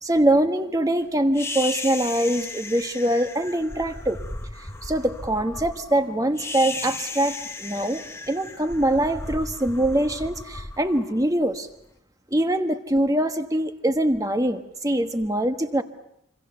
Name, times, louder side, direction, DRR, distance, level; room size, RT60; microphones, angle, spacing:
voice 1, 0.0-4.2 4.8-11.7 12.3-15.8, right 1 dB, 15° right, 8 dB, 1.3 m, -23 dB
sound 1, 1.3-11.7, left 3 dB, 15° left, 1.2 m, -35 dB
26.5 x 25.5 x 6.9 m, 0.78 s
head